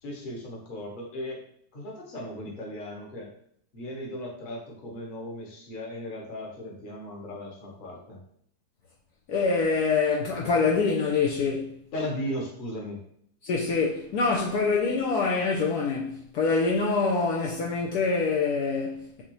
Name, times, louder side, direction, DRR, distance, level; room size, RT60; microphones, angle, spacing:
voice 1, 0.0-1.4 1.7-3.3 3.7-8.2 11.9-13.0, left 1 dB, 35° left, 1.0 m, -36 dB
voice 2, 9.3-11.7 13.4-19.2, left 4 dB, 70° left, 1.1 m, -25 dB
6.0 x 2.7 x 3.1 m
omnidirectional pair, 1.9 m